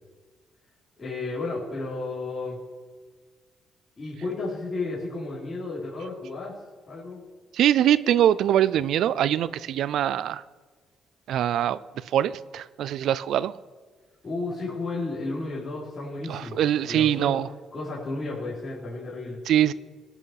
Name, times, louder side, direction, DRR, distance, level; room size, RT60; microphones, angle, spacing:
voice 1, 1.0-2.6 4.0-6.6 6.9-7.2 14.2-16.6 16.9-17.4 17.7-19.4, left 3 dB, 35° left, -8 dB, 3.7 m, -33 dB
voice 2, 7.5-10.4 11.3-11.8 12.1-13.5 16.3-17.5 19.5-19.7, right 11 dB, 75° right, 18 dB, 0.4 m, -23 dB
17.0 x 6.1 x 5.9 m, 1.5 s
cardioid pair, 90°, 0 cm